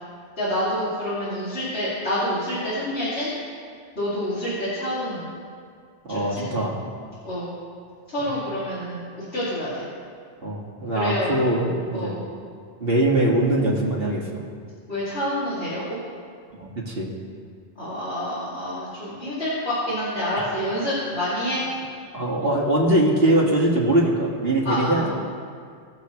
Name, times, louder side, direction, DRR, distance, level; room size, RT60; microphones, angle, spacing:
voice 1, 0.4-3.3 4.0-5.3 6.1-6.4 7.2-7.5 8.1-9.0 9.3-9.8 10.9-11.3 11.9-12.2 14.9-16.0 17.8-21.6 24.6-25.1, left 1 dB, 70° left, -12 dB, 3.0 m, -27 dB
voice 2, 6.0-6.7 8.3-8.4 10.4-12.2 12.8-14.4 16.6-17.1 22.1-25.1, right 1 dB, 60° right, -3 dB, 2.2 m, -22 dB
21.0 x 7.2 x 3.2 m, 2.1 s
omnidirectional pair, 1.1 m